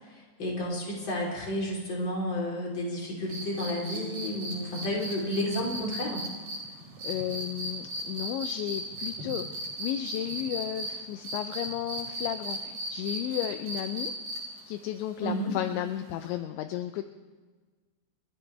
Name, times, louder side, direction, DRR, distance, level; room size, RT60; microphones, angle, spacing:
voice 1, 0.0-6.2 15.2-15.5, left 1 dB, 25° left, -3 dB, 3.7 m, -31 dB
sound 1, 3.3-10.9 11.2-14.6 16.2-16.3, right 1 dB, 50° right, 4.9 m, -36 dB
voice 2, 7.0-14.1 14.7-17.0, left 12 dB, 80° left, 8 dB, 2.7 m, -33 dB
29.5 x 14.0 x 3.4 m, 1.4 s
omnidirectional pair, 5.7 m